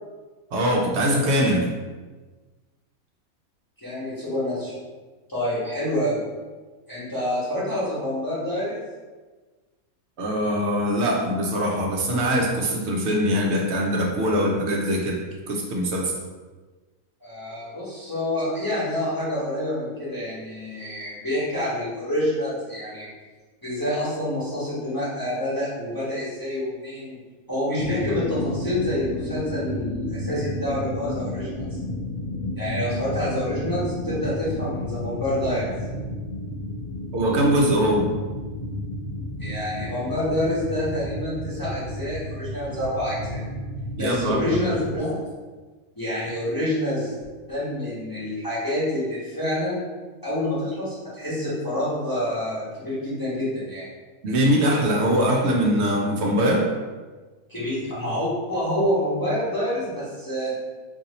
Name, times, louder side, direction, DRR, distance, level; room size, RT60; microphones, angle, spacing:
voice 1, 0.5-1.7 10.2-16.1 37.1-38.1 44.0-44.4 54.2-56.7, equal, 65° right, 0 dB, 0.7 m, -22 dB
voice 2, 3.8-4.7 5.3-6.3 6.9-8.8 17.2-23.1 23.6-27.2 27.5-31.8 32.6-35.7 39.4-43.4 44.0-45.2 46.0-47.2 47.5-49.8 50.2-53.9 57.5-60.5, left 1 dB, 15° left, -10 dB, 1.0 m, -27 dB
sound 1, 27.8-45.0, left 1 dB, 65° left, 0.8 m, -32 dB
2.8 x 2.6 x 3.9 m, 1.3 s
omnidirectional pair, 1.5 m